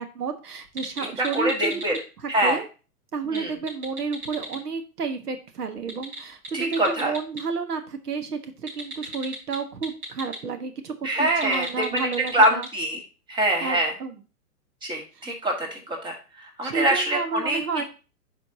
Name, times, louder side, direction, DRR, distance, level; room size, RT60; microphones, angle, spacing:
voice 1, 0.0-1.8 2.2-2.7 3.1-12.7 13.6-14.2 15.1-15.2 16.6-17.8, right 5 dB, 80° right, 7 dB, 1.4 m, -31 dB
sound 1, 0.6-2.0 3.2-4.6 5.8-7.4 8.7-10.4 11.3-12.7, right 1 dB, 35° right, 4.3 m, -37 dB
voice 2, 1.2-1.9 2.3-2.6 3.3-3.5 6.5-7.1 11.0-13.0 13.3-13.9 14.8-16.2 16.6-17.6, right 1 dB, 10° right, 2 dB, 1.6 m, -24 dB
10.0 x 5.1 x 2.8 m, 0.33 s
hypercardioid pair, 125°, 46 cm